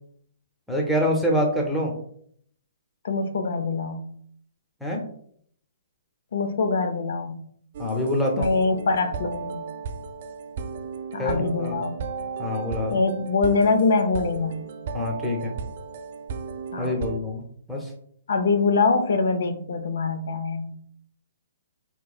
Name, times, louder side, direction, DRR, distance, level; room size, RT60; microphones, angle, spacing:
voice 1, 0.7-1.9 4.8-5.0 7.8-8.5 11.2-11.8 12.4-13.0 14.9-15.5 16.8-17.9, left 1 dB, ahead, -2 dB, 0.6 m, -26 dB
voice 2, 3.0-4.1 6.3-7.4 8.4-9.7 11.1-12.0 12.9-14.5 16.7-17.0 18.3-20.7, left 4 dB, 75° left, 7 dB, 0.5 m, -24 dB
sound 1, 7.7-17.2, right 5 dB, 50° right, 0.3 m, -35 dB
4.1 x 3.0 x 2.3 m, 0.64 s
hypercardioid pair, 155°, 0 cm